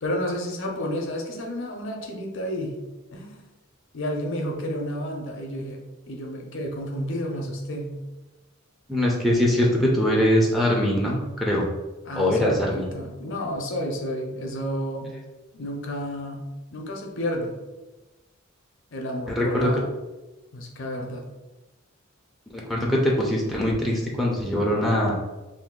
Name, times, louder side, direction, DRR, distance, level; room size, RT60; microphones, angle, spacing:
voice 1, 0.0-2.8 3.1-3.4 3.9-5.8 6.1-8.0 12.1-15.1 15.5-17.6 18.9-19.9 20.5-21.3, equal, 60° left, 2 dB, 0.6 m, -31 dB
voice 2, 8.9-11.7 12.2-12.9 19.3-19.7 22.5-25.2, left 1 dB, ahead, -3 dB, 0.5 m, -22 dB
2.6 x 2.6 x 3.6 m, 1.1 s
head